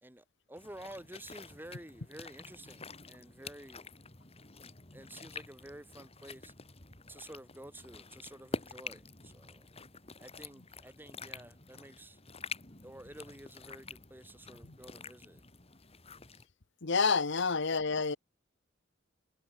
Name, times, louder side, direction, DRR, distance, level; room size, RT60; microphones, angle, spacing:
voice 1, 0.0-3.9 4.9-6.5 7.1-9.7 10.2-12.2 12.8-15.4, right 1 dB, 10° right, 2.2 m, -51 dB
Stepping on Stone immersed in mud, 0.6-16.5, left 3 dB, 30° left, 3.3 m, -47 dB
voice 2, 16.8-18.2, left 4 dB, 60° left, 1.1 m, -29 dB
head